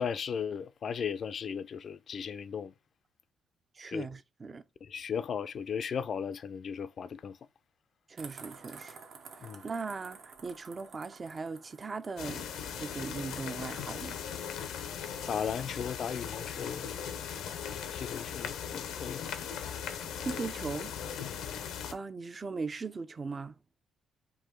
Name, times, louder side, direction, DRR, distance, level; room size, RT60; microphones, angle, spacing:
voice 1, 0.0-2.7 3.9-4.1 4.8-7.4 9.4-9.6 15.3-16.9 17.9-19.2 21.4-21.6, left 7 dB, 55° left, 0.3 m, -36 dB
voice 2, 3.8-4.6 8.1-9.0 9.6-12.4 12.8-14.2 20.2-20.9 21.9-23.5, right 4 dB, 35° right, 0.4 m, -38 dB
sound 1, 8.2-12.6, right 5 dB, 70° right, 0.8 m, -51 dB
sound 2, 12.2-21.9, left 8 dB, 90° left, 0.6 m, -39 dB
4.6 x 2.7 x 3.7 m
cardioid pair, 90°, 0 cm